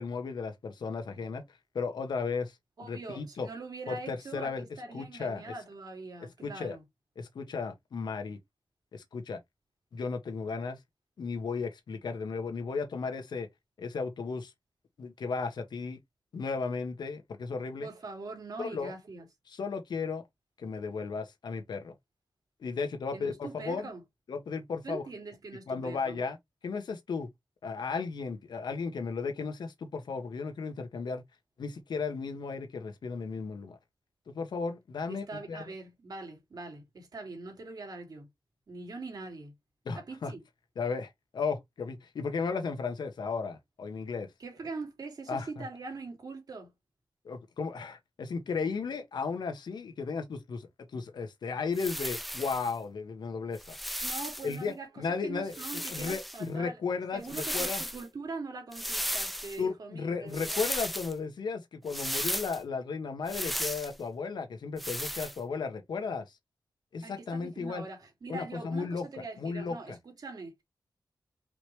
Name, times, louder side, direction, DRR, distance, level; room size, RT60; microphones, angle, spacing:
voice 1, 0.0-1.4 1.7-2.5 2.8-3.5 3.9-4.6 4.9-5.5 6.4-6.8 7.2-8.4 8.9-9.4 9.9-10.8 11.2-13.5 13.8-14.5 15.0-16.0 16.3-17.9 18.6-18.9 19.5-20.2 20.6-21.9 22.6-23.9 24.3-25.0 25.7-26.4 26.6-27.3 27.6-31.2 31.6-33.8 34.3-35.6 39.8-40.3 40.8-44.3 45.3-45.6 47.2-53.8 54.4-55.6 55.9-57.8 59.6-66.4 66.9-67.8 68.3-69.0 69.4-70.0, left 5 dB, 90° left, 1.2 m, -35 dB
voice 2, 2.8-6.8 17.8-19.3 23.1-24.0 24.8-26.2 35.1-38.3 38.7-39.5 39.9-40.4 44.4-46.7 54.0-56.8 57.1-60.7 67.0-70.6, right 3 dB, 65° right, 2.4 m, -42 dB
sound 1, 51.7-52.7 53.5-54.6 55.5-56.4 57.2-58.0 58.7-59.6 60.3-61.1 61.9-62.6 63.3-63.9 64.8-65.4, equal, ahead, 0.6 m, -35 dB
5.0 x 3.2 x 3.1 m
wide cardioid pair, 105°, 7 cm